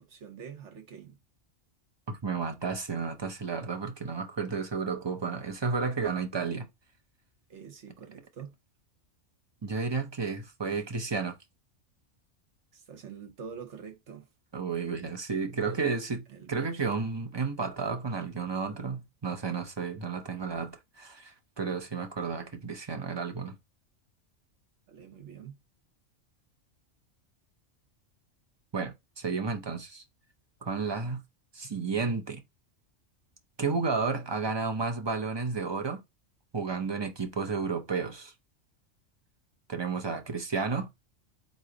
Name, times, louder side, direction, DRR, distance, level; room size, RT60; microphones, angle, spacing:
voice 1, 0.1-1.2 7.5-8.5 12.7-14.3 15.7-15.9 16.3-16.8 24.9-25.6, right 7 dB, 70° right, 1.3 m, -46 dB
voice 2, 2.1-6.7 9.6-11.3 14.5-16.2 16.5-20.7 21.0-23.5 28.7-30.0 30.6-31.2 31.5-32.4 33.6-36.0 36.5-38.3 39.7-40.9, right 4 dB, 30° right, 0.5 m, -32 dB
3.9 x 3.1 x 3.8 m
omnidirectional pair, 1.3 m